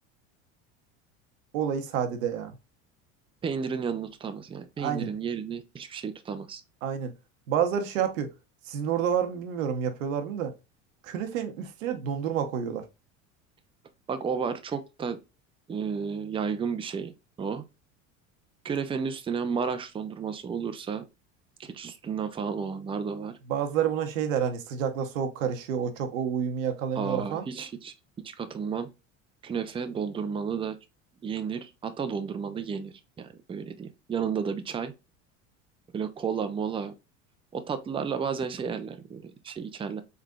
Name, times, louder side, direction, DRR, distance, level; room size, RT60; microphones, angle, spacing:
voice 1, 1.5-2.5 4.8-5.1 6.8-7.1 7.5-8.3 8.7-10.5 11.0-12.8 23.5-27.4, right 8 dB, 85° right, 0.9 m, -29 dB
voice 2, 3.4-6.6 14.1-15.2 15.7-17.6 18.6-21.0 21.6-23.4 27.0-27.9 28.2-28.9 29.4-30.8 31.2-34.9 35.9-36.9 37.5-40.0, right 6 dB, 15° right, 0.4 m, -32 dB
3.8 x 3.3 x 2.2 m
hypercardioid pair, 90°, 38 cm